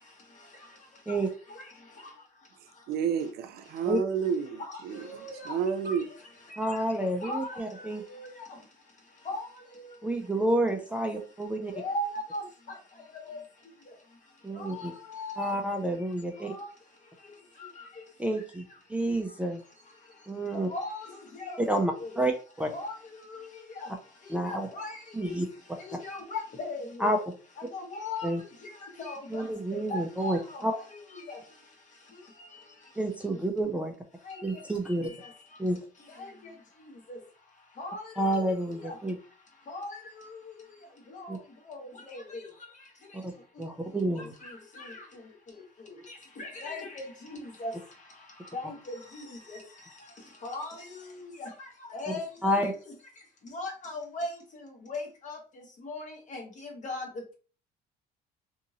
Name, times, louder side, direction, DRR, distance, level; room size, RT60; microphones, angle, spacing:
voice 1, 2.9-6.1, right 6 dB, 70° right, 0.5 m, -30 dB
voice 2, 5.0-5.5 5.9-6.0 7.2-7.6 8.2-8.3 9.3-9.4 11.7-12.1 12.3-12.4 13.3-13.4 14.6-15.4 16.5-16.6 20.7-21.0 21.4-21.6 22.0-22.1 22.7-22.9 24.7-24.9 25.2-25.3 25.9-26.8 27.7-28.3 29.0-29.2 29.9-30.4 30.7-30.8 31.3-31.4 34.3-34.4 34.9-35.0 37.8-38.0 39.7-39.9 41.7-41.8 42.1-42.2 46.4-47.0 47.6-47.7 48.5-49.0 50.4-50.7 51.4-51.5 51.9-52.6 53.5-54.3 54.9-55.4 55.9-56.0 56.3-56.4 56.8-57.0, left 2 dB, 45° left, 1.2 m, -36 dB
voice 3, 6.6-8.0 10.0-11.7 14.4-14.9 15.4-16.5 18.2-18.6 18.9-19.6 20.3-20.7 21.7-22.7 24.3-24.7 25.1-25.5 27.0-27.3 28.2-28.4 29.3-30.7 33.0-33.9 34.4-35.1 35.6-35.8 38.2-39.2 41.3-41.4 43.2-43.3 43.6-44.3 52.4-52.7, right 1 dB, 10° right, 0.4 m, -29 dB
2.7 x 2.6 x 2.7 m
cardioid pair, 110°, 17 cm